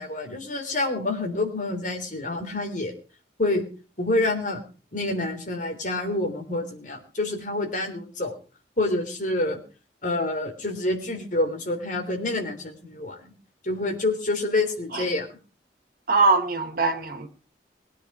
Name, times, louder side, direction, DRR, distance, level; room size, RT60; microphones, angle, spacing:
voice 1, 0.0-2.9 3.4-3.6 4.0-4.6 4.9-8.4 8.8-9.6 10.0-13.2 13.6-15.3, left 2 dB, 45° left, 3.6 m, -27 dB
voice 2, 16.1-17.3, right 3 dB, 55° right, 2.4 m, -22 dB
21.5 x 10.0 x 4.9 m
head